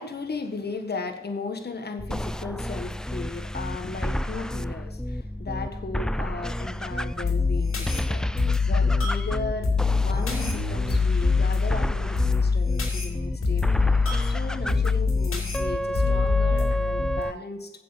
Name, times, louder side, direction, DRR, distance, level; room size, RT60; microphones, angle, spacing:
voice 1, 0.0-13.8 14.2-17.7, left 3 dB, 50° left, 6 dB, 1.6 m, -36 dB
sound 1, 2.0-17.3, equal, 5° left, 0.4 m, -31 dB
sound 2, 7.2-17.2, left 4 dB, 90° left, 2.6 m, -24 dB
7.8 x 7.6 x 7.2 m, 0.94 s
cardioid pair, 50°, 21 cm